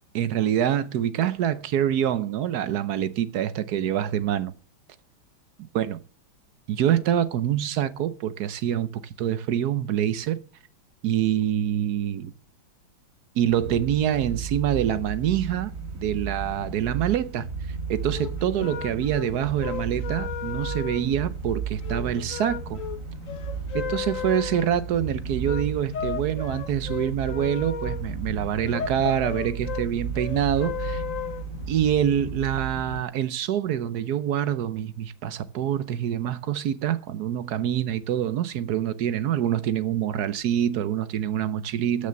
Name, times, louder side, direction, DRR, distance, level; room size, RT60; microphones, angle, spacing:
voice 1, 0.1-4.5 5.7-6.0 6.7-10.4 11.0-12.3 13.3-15.7 16.0-17.5 17.9-22.8 23.7-31.0 31.7-42.1, right 10 dB, 65° right, 1.1 m, -26 dB
sound 1, 13.5-33.0, right 5 dB, 45° right, 1.9 m, -34 dB
sound 2, 17.9-31.8, left 8 dB, 50° left, 1.1 m, -35 dB
13.5 x 6.7 x 6.8 m
omnidirectional pair, 2.2 m